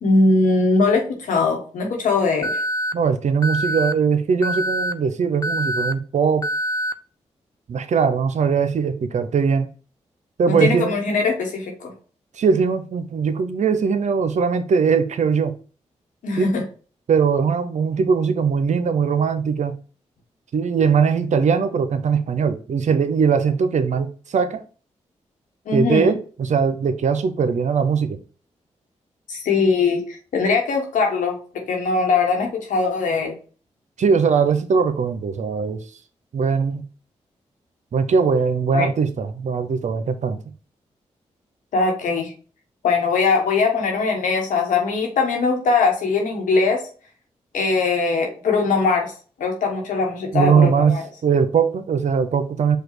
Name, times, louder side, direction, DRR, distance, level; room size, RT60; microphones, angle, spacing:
voice 1, 0.0-2.5 10.5-11.9 16.2-16.6 25.7-26.2 29.3-31.4 31.7-33.3 38.7-38.9 41.7-42.3 42.8-46.8 47.5-49.1 49.4-51.0, left 4 dB, 85° left, 1.1 m, -21 dB
Alarm, 2.4-2.9 3.4-3.9 4.4-4.9 5.4-5.9 6.4-6.9, equal, 25° left, 0.4 m, -24 dB
voice 2, 2.9-6.5 7.7-9.7 10.4-11.0 12.4-15.6 16.4-16.5 17.1-19.7 20.5-24.6 25.7-28.2 34.0-35.8 36.3-36.8 37.9-40.4 50.3-50.9 51.2-52.8, right 6 dB, 65° right, 0.6 m, -20 dB
4.9 x 2.3 x 4.5 m
supercardioid pair, 45°, 13 cm